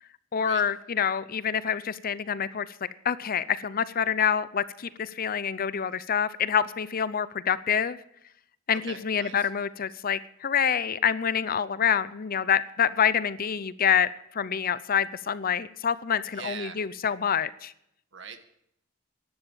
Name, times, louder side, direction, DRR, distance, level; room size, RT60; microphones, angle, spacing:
voice 1, 0.3-2.7 3.0-8.0 8.7-17.7, left 7 dB, 45° left, 16 dB, 0.6 m, -27 dB
voice 2, 8.8-9.5 16.3-16.8 18.1-18.4, right 6 dB, 65° right, 7 dB, 1.7 m, -41 dB
12.0 x 11.5 x 7.3 m, 0.75 s
head